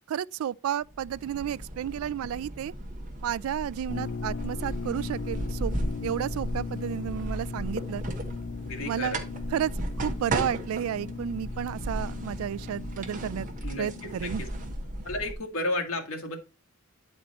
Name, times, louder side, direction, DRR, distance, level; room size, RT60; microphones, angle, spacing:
voice 1, 0.1-2.7 3.2-5.7 6.0-8.0 8.8-9.2 9.5-9.7 10.0-13.5 13.8-14.4, right 9 dB, 85° right, 0.3 m, -32 dB
sound 1, 0.8-15.3, right 1 dB, 40° right, 1.1 m, -36 dB
sound 2, 3.9-14.7, left 5 dB, 55° left, 0.4 m, -39 dB
voice 2, 8.6-9.2 13.6-13.9 14.2-14.5 15.1-16.4, left 2 dB, 75° left, 1.7 m, -32 dB
9.6 x 4.4 x 4.1 m
head